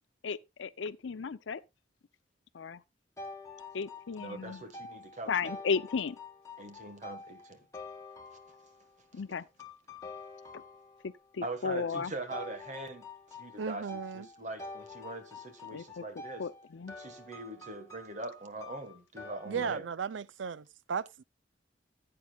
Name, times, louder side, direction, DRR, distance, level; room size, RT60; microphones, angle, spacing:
voice 1, 0.2-1.6 2.5-2.8 3.7-4.6 5.3-6.2 9.1-9.4 11.0-12.1 15.7-16.0 16.4-16.9 19.6-19.7, left 5 dB, 80° left, 0.5 m, -34 dB
sound 1, 3.2-8.9 9.6-11.2 12.3-19.7, left 3 dB, 15° left, 1.9 m, -47 dB
voice 2, 4.2-5.5 6.6-7.6 11.4-16.4 17.0-19.9, right 2 dB, 40° right, 1.5 m, -42 dB
voice 3, 13.6-14.2 19.5-21.2, right 6 dB, 80° right, 0.5 m, -35 dB
15.0 x 8.7 x 2.3 m
head